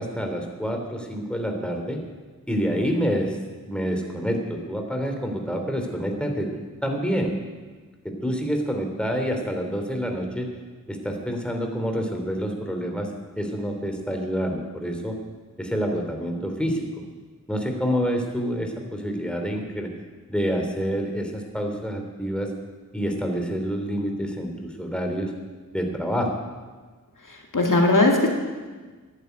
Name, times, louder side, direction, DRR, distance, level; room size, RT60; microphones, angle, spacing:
voice 1, 0.0-2.0 2.5-3.4 3.7-6.5 6.8-7.3 8.0-10.5 10.9-13.1 13.3-15.2 15.6-17.1 17.5-19.9 20.3-22.5 22.9-25.3 25.7-26.4, equal, 5° left, 3 dB, 3.1 m, -27 dB
voice 2, 27.3-28.3, left 2 dB, 65° left, 1 dB, 2.4 m, -19 dB
13.0 x 11.0 x 9.4 m, 1.4 s
wide cardioid pair, 50°, 34 cm